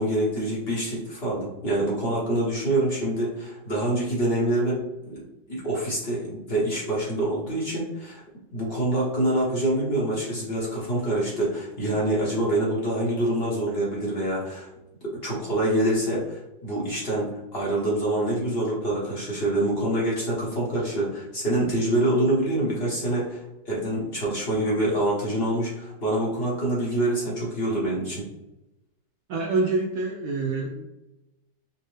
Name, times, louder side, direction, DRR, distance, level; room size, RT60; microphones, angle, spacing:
voice 1, 0.0-5.2 5.5-8.2 8.5-14.7 15.2-28.2, right 1 dB, 40° left, -5 dB, 1.1 m, -26 dB
voice 2, 29.3-30.9, right 3 dB, 75° right, 1 dB, 0.8 m, -26 dB
5.1 x 2.2 x 3.2 m, 0.96 s
omnidirectional pair, 2.0 m